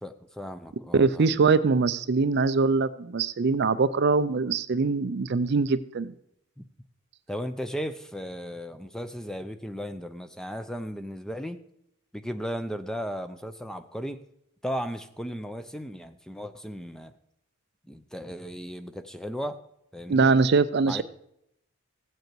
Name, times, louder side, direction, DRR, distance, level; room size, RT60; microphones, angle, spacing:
voice 1, 0.0-1.4 6.6-6.7 7.3-11.6 12.1-14.2 14.6-17.1 17.9-19.6 19.9-20.3 20.9-21.0, equal, 5° left, 10 dB, 0.5 m, -35 dB
voice 2, 0.9-6.1 20.1-21.0, right 4 dB, 50° right, 14 dB, 0.5 m, -23 dB
15.5 x 7.9 x 4.6 m, 0.76 s
head